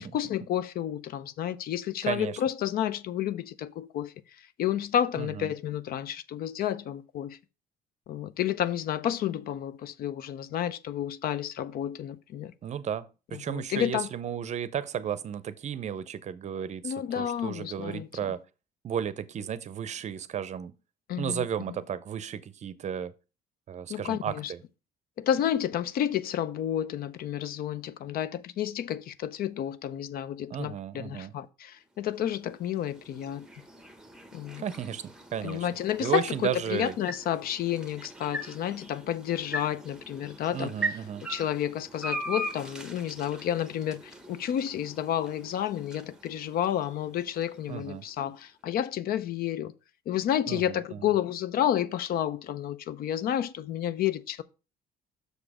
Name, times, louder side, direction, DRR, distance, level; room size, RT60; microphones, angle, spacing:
voice 1, 0.0-4.1 4.6-7.4 8.1-12.5 13.5-14.1 16.8-18.1 21.1-21.4 23.9-24.5 25.2-33.5 34.3-34.6 35.4-40.7 41.3-44.0 44.3-49.7 50.1-54.4, left 10 dB, 60° left, 0.5 m, -30 dB
voice 2, 2.0-2.4 5.2-5.5 12.6-18.4 18.8-20.7 21.2-23.1 23.7-24.6 30.5-31.3 34.6-35.0 35.3-35.7 36.0-37.0 40.5-41.3 47.7-48.0 50.5-51.1, right 8 dB, 45° right, 0.6 m, -34 dB
sound 1, 32.0-48.2, right 1 dB, 5° right, 0.9 m, -41 dB
6.5 x 5.0 x 4.8 m
cardioid pair, 110°, 17 cm